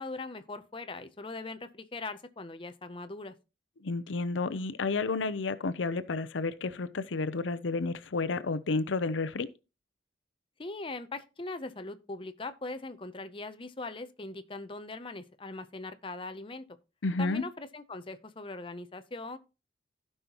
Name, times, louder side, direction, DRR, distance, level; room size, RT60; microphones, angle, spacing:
voice 1, 0.0-3.3 10.6-16.6 17.2-19.4, left 3 dB, 30° left, 0.6 m, -40 dB
voice 2, 3.8-9.5 17.0-17.4, left 3 dB, 90° left, 0.6 m, -31 dB
15.5 x 5.6 x 2.9 m
head